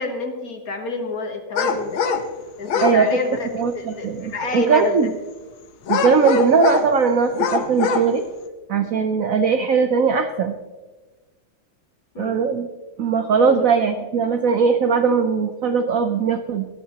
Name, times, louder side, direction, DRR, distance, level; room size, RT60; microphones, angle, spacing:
voice 1, 0.0-2.0 2.6-3.5 3.7-4.9 12.1-12.4 13.4-13.7, left 3 dB, 50° left, 5 dB, 1.4 m, -28 dB
sound 1, 1.6-2.3 2.6-3.0 5.9-6.9 7.3-8.1, left 6 dB, 80° left, 1.7 m, -22 dB
voice 2, 3.5-5.1 5.9-8.2 8.7-10.6 12.2-12.7 13.0-16.7, right 5 dB, 70° right, 7 dB, 0.8 m, -19 dB
19.0 x 11.5 x 2.9 m, 1.3 s
omnidirectional pair, 2.3 m